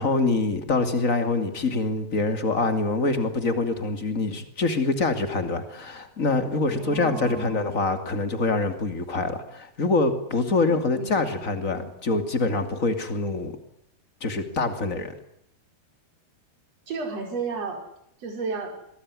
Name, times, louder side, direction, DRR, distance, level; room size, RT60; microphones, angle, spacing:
voice 1, 0.0-13.5 14.2-15.1, left 3 dB, 25° left, 8 dB, 2.3 m, -25 dB
voice 2, 6.7-7.7 10.5-11.9 16.9-17.8 18.2-18.7, right 4 dB, 35° right, 3 dB, 6.2 m, -34 dB
25.0 x 20.0 x 9.9 m, 0.76 s
omnidirectional pair, 4.9 m